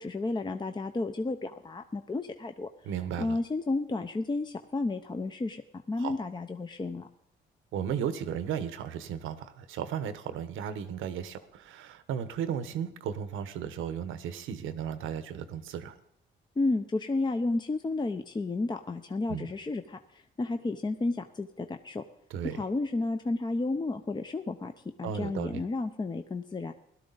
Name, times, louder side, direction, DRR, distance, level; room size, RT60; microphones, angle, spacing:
voice 1, 0.0-2.7 3.2-5.6 5.9-7.1 16.6-22.0 22.5-24.7 25.0-26.7, left 2 dB, 20° left, 7 dB, 0.7 m, -32 dB
voice 2, 2.8-3.4 6.0-6.2 7.7-16.0 19.3-19.5 22.3-22.6 25.0-25.6, right 8 dB, 90° right, 12 dB, 1.1 m, -35 dB
17.0 x 12.0 x 4.0 m, 0.75 s
cardioid pair, 90°, 20 cm